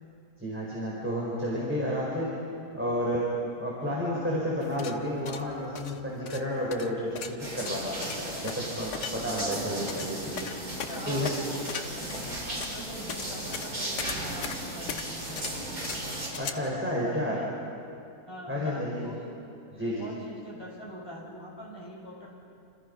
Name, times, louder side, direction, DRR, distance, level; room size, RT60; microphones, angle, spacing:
voice 1, 0.4-2.3 2.7-3.3 3.6-10.5 11.0-11.4 16.4-17.4 18.5-19.1 19.7-20.1, equal, 5° right, -6 dB, 4.8 m, -31 dB
sound 1, 4.6-16.5, left 6 dB, 90° left, 1.7 m, -39 dB
sound 2, 7.4-16.3, right 1 dB, 60° right, 6.9 m, -36 dB
voice 2, 10.8-15.8 17.2-17.5 18.3-19.3 19.7-22.3, equal, 15° left, -4 dB, 6.8 m, -43 dB
28.0 x 28.0 x 5.5 m, 2.6 s
omnidirectional pair, 1.7 m